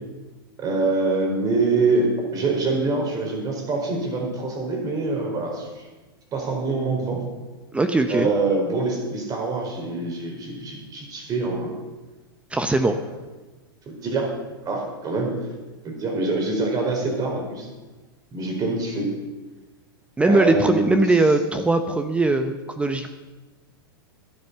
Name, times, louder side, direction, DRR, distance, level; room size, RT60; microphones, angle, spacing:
voice 1, 0.6-5.7 6.3-7.2 8.1-11.7 12.9-13.0 13.9-14.3 14.6-15.3 15.8-17.7 18.3-19.2 20.3-21.1, right 3 dB, 30° right, 2 dB, 4.5 m, -25 dB
voice 2, 7.7-8.3 12.5-13.0 20.2-23.1, right 2 dB, 10° right, 8 dB, 0.8 m, -20 dB
13.0 x 10.0 x 6.8 m, 1.2 s
hypercardioid pair, 115°, 13 cm